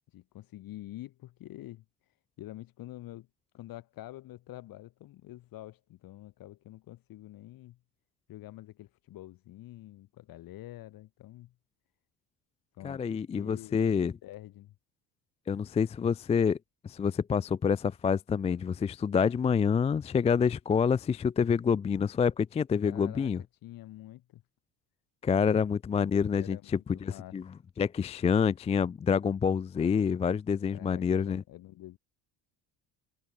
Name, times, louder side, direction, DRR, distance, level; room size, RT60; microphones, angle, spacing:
voice 1, 0.1-1.8 2.4-3.3 3.5-7.8 8.3-11.5 12.7-14.8 22.8-23.3 23.6-24.4 26.4-26.7 26.9-27.4 30.7-32.0, left 15 dB, 60° left, 4.0 m, -47 dB
voice 2, 12.8-14.1 15.5-16.6 16.8-23.4 25.2-26.6 26.9-27.4 27.8-31.4, left 6 dB, 15° left, 0.4 m, -27 dB
cardioid pair, 165°, 39 cm